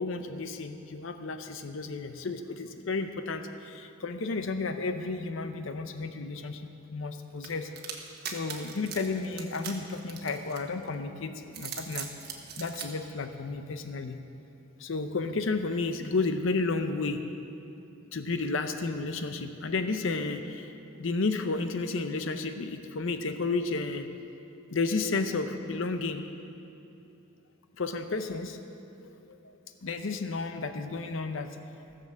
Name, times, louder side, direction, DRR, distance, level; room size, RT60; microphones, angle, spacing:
voice 1, 0.0-7.7 8.3-12.1 12.6-14.2 14.8-17.4 18.1-24.1 24.7-26.2 27.8-28.6 29.0-29.4 29.8-31.6, left 3 dB, 65° left, 8 dB, 0.6 m, -32 dB
sound 1, 7.4-10.9 11.4-12.9, right 8 dB, 50° right, 1.3 m, -40 dB
15.0 x 6.7 x 7.3 m, 2.8 s
head